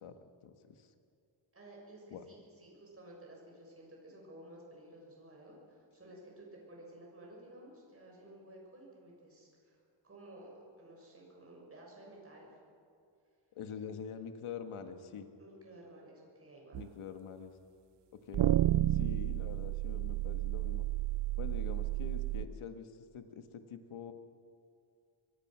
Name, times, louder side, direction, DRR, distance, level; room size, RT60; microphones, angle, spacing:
voice 1, 0.0-0.9 2.1-2.2 13.5-15.3 16.7-17.5 18.3-18.5 18.9-20.9 21.4-24.1, left 7 dB, 80° left, 7 dB, 1.7 m, -45 dB
voice 2, 1.5-12.5 15.4-16.8, right 1 dB, 30° right, -2 dB, 6.8 m, -54 dB
sound 1, 16.7-16.9 18.3-22.5, right 15 dB, 60° right, 0.6 m, -31 dB
24.5 x 24.0 x 6.2 m, 2.5 s
wide cardioid pair, 170°, 49 cm